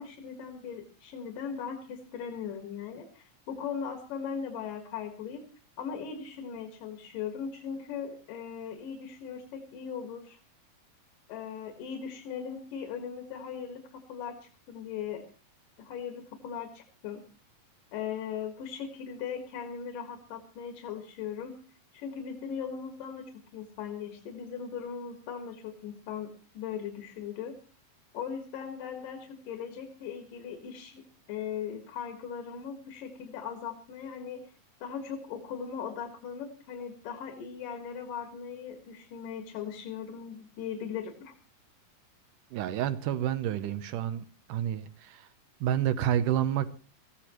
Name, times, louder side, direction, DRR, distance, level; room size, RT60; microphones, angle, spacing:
voice 1, 0.0-5.4 5.8-10.4 11.3-15.2 15.8-17.2 17.9-21.5 21.9-27.6 28.1-31.0 31.3-34.4 34.8-41.3, left 7 dB, 70° left, 5 dB, 3.3 m, -39 dB
voice 2, 42.5-45.3 45.6-46.7, right 10 dB, 75° right, 12 dB, 2.2 m, -29 dB
21.5 x 15.0 x 3.0 m, 0.35 s
omnidirectional pair, 4.0 m